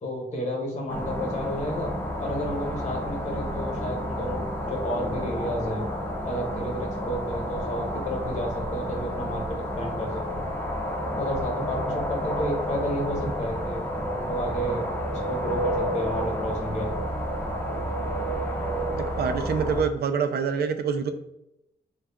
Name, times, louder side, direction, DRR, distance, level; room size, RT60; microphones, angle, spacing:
voice 1, 0.0-1.9 2.2-5.9 6.2-10.5 11.2-13.8 14.1-16.9, equal, 45° left, 0 dB, 1.0 m, -31 dB
sound 1, 0.9-19.8, equal, 15° left, 0.6 m, -30 dB
voice 2, 18.9-21.1, right 6 dB, 70° right, 8 dB, 0.4 m, -26 dB
3.8 x 2.3 x 3.5 m, 0.83 s
wide cardioid pair, 140°, 17 cm